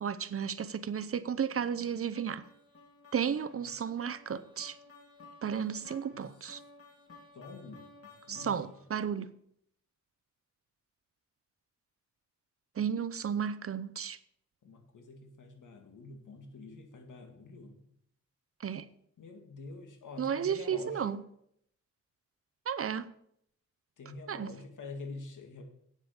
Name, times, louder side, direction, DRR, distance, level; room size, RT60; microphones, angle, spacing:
voice 1, 0.0-2.4 3.1-4.8 5.4-6.6 8.3-9.3 12.8-14.2 18.6-18.9 20.2-21.2 22.7-23.1 24.3-24.5, right 7 dB, 45° right, 0.7 m, -33 dB
sound 1, 1.5-9.0, left 3 dB, 50° left, 2.2 m, -56 dB
voice 2, 3.5-3.9 6.1-6.3 7.3-8.8 14.6-17.8 19.2-21.2 24.0-25.6, left 3 dB, 80° left, 2.2 m, -47 dB
8.9 x 7.4 x 6.8 m
cardioid pair, 100°, 31 cm